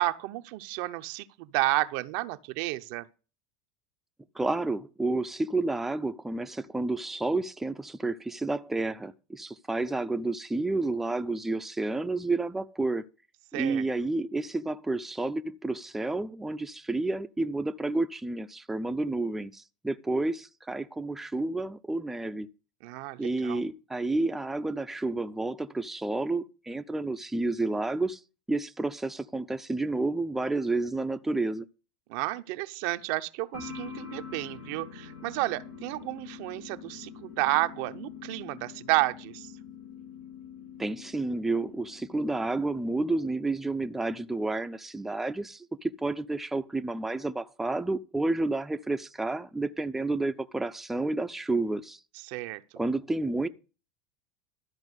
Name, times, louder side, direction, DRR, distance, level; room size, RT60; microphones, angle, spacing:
voice 1, 0.0-3.1 13.5-13.9 22.8-23.6 32.1-39.5 52.2-52.6, right 18 dB, 65° right, 0.7 m, -31 dB
voice 2, 4.4-13.0 13.5-22.5 23.2-28.2 28.5-31.6 40.8-52.0 52.8-53.5, right 2 dB, 5° right, 0.6 m, -30 dB
sound 1, 33.5-43.0, left 7 dB, 80° left, 2.3 m, -45 dB
13.0 x 4.4 x 8.2 m
hypercardioid pair, 95°, 3 cm